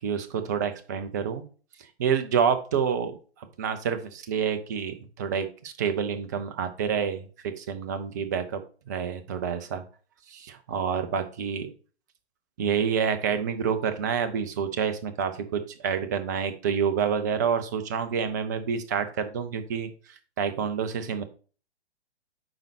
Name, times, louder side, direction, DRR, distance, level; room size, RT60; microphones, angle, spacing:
voice 1, 0.0-1.4 2.0-8.6 8.9-9.8 10.3-11.7 12.6-21.2, right 7 dB, 15° right, 9 dB, 0.5 m, -28 dB
8.8 x 5.2 x 2.8 m, 0.38 s
figure-of-eight pair, 125°, 33 cm